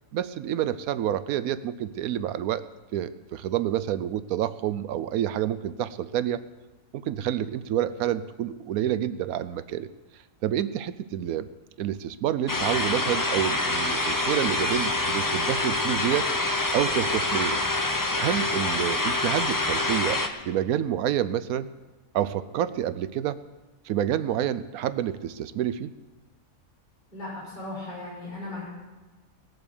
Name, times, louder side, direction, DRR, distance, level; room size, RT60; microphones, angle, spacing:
voice 1, 0.1-2.6 2.9-6.4 6.9-9.9 10.4-11.5 11.8-16.3 16.7-17.6 18.2-20.2 20.5-21.7 22.1-23.4 23.9-25.9, right 11 dB, 90° right, 13 dB, 1.1 m, -28 dB
sound 1, 12.5-20.3, left 2 dB, 15° left, 0.8 m, -26 dB
voice 2, 27.1-28.6, left 2 dB, 35° left, -7 dB, 6.3 m, -37 dB
19.0 x 7.8 x 7.0 m, 1.2 s
omnidirectional pair, 1.5 m